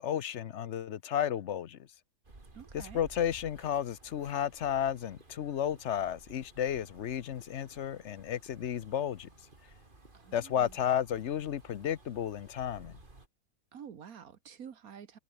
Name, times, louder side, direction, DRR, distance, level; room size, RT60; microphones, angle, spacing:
voice 1, 0.0-1.8 2.7-9.3 10.3-12.9, left 9 dB, 60° left, 1.0 m, -33 dB
sound 1, 2.2-13.3, right 2 dB, 35° right, 3.3 m, -56 dB
voice 2, 2.5-3.0 10.1-10.8 13.7-15.2, right 7 dB, 80° right, 1.8 m, -48 dB
omnidirectional pair, 1.5 m